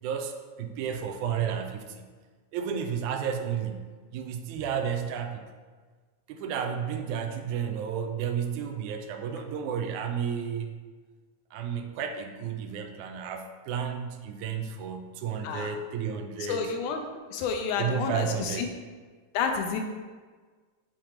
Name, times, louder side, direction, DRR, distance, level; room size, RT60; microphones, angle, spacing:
voice 1, 0.0-2.1 2.5-5.4 6.3-10.8 11.5-16.7 17.8-18.8, right 7 dB, 85° right, 5 dB, 1.9 m, -32 dB
voice 2, 16.5-17.0 17.3-18.7 19.3-19.8, left 6 dB, 90° left, 4 dB, 2.2 m, -29 dB
7.4 x 3.0 x 4.9 m, 1.4 s
omnidirectional pair, 3.5 m